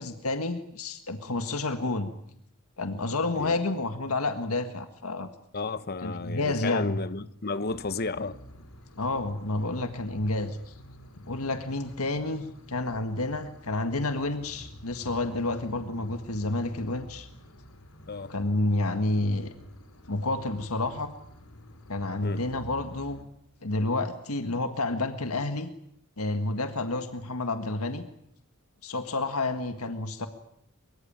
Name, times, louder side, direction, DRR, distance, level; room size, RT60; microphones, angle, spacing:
voice 1, 0.0-2.1 2.8-5.3 6.0-7.0 9.0-10.7 11.3-17.3 18.3-19.5 20.1-21.1 21.9-23.2 23.6-25.7 26.2-28.0 28.8-30.3, left 2 dB, 85° left, 1.8 m, -30 dB
voice 2, 5.5-8.4 18.1-18.3 22.2-22.5, left 3 dB, 45° left, 1.2 m, -33 dB
sound 1, 7.7-23.2, equal, 70° left, 4.6 m, -49 dB
24.0 x 23.5 x 8.8 m
head